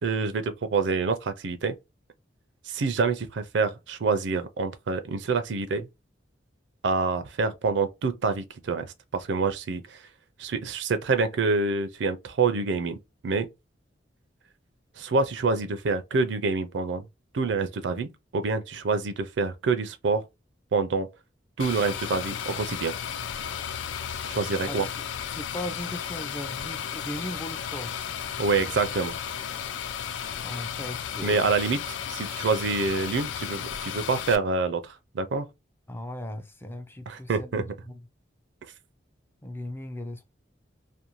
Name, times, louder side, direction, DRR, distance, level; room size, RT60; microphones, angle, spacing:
voice 1, 0.0-1.8 2.7-5.9 6.8-10.0 10.4-13.0 13.2-13.5 15.0-17.1 17.3-20.2 20.7-21.1 21.6-22.9 24.2-24.9 28.4-29.1 31.2-31.8 32.1-35.5 37.1-37.7, right 4 dB, 70° right, 0.4 m, -27 dB
sound 1, 21.6-34.4, left 8 dB, 85° left, 0.3 m, -34 dB
voice 2, 25.3-28.0 30.4-31.5 35.9-38.1 39.4-40.3, left 1 dB, 10° left, 0.4 m, -38 dB
2.6 x 2.1 x 2.9 m
head